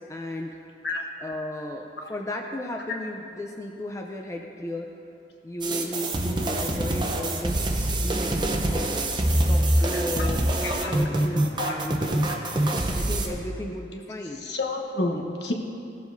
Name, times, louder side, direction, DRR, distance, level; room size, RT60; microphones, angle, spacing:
voice 1, 0.1-0.6 1.2-4.9 5.4-9.0 9.5-10.4 10.8-12.3 13.0-14.5, left 1 dB, 15° left, 2 dB, 0.4 m, -35 dB
sound 1, 5.6-13.3, right 1 dB, 25° right, 0.7 m, -25 dB
voice 2, 9.9-10.3 10.6-11.0 11.6-11.8 14.4-15.5, left 2 dB, 70° left, 1 dB, 1.1 m, -30 dB
16.5 x 7.2 x 2.6 m, 2.7 s
head